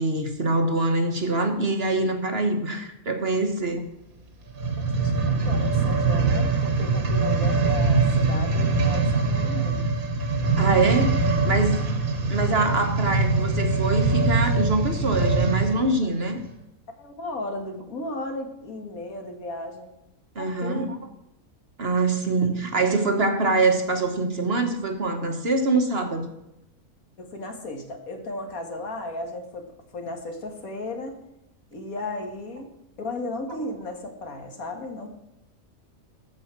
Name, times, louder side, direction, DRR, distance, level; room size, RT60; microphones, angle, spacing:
voice 1, 0.0-3.9 10.6-11.9 12.3-16.4 20.3-21.0 21.8-26.3, right 2 dB, 45° right, 5 dB, 1.4 m, -24 dB
sound 1, 4.5-15.8 16.4-16.5, right 3 dB, 70° right, 2.0 m, -23 dB
voice 2, 5.0-9.9 11.6-11.8 16.0-16.1 17.0-19.9 20.4-20.9 27.2-31.2 31.7-35.1, left 2 dB, 70° left, 4 dB, 2.1 m, -35 dB
14.5 x 5.6 x 5.9 m, 0.88 s
omnidirectional pair, 1.5 m